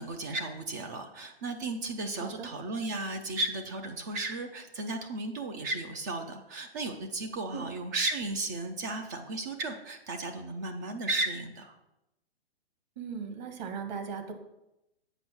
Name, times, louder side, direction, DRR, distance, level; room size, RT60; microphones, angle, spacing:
voice 1, 0.0-11.7, right 2 dB, 20° right, 6 dB, 0.3 m, -34 dB
voice 2, 13.0-14.3, right 5 dB, 40° right, 6 dB, 1.4 m, -38 dB
7.9 x 5.3 x 6.1 m, 0.89 s
hypercardioid pair, 135°, 33 cm